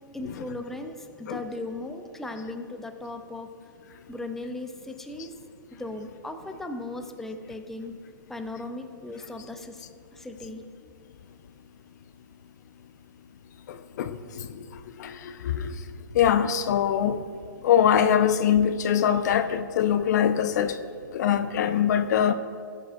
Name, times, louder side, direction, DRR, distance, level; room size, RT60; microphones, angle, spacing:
voice 1, 0.1-3.5 4.1-5.3 5.7-7.9 8.3-9.8 10.1-10.6, left 2 dB, 5° left, 5 dB, 0.6 m, -37 dB
voice 2, 13.7-14.5 15.0-15.7 16.1-17.2 17.6-20.8 21.1-22.3, left 9 dB, 55° left, 10 dB, 0.5 m, -23 dB
18.0 x 6.7 x 2.6 m, 2.2 s
hypercardioid pair, 125°, 11 cm